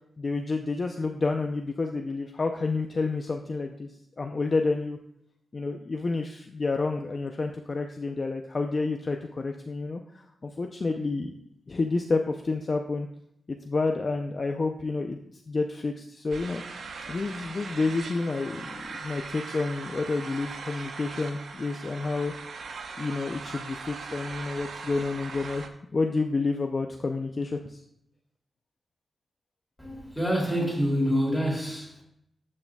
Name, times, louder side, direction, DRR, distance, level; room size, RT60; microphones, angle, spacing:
voice 1, 0.2-3.9 4.2-5.0 5.5-11.4 11.7-13.1 13.5-15.2 15.5-16.6 17.1-22.3 23.0-27.8, left 3 dB, 35° left, 4 dB, 0.5 m, -29 dB
sound 1, 16.3-25.7, right 4 dB, 65° right, 0.8 m, -40 dB
voice 2, 29.8-32.0, equal, ahead, -3 dB, 2.6 m, -27 dB
13.0 x 6.5 x 2.3 m, 0.75 s
wide cardioid pair, 155°, 0 cm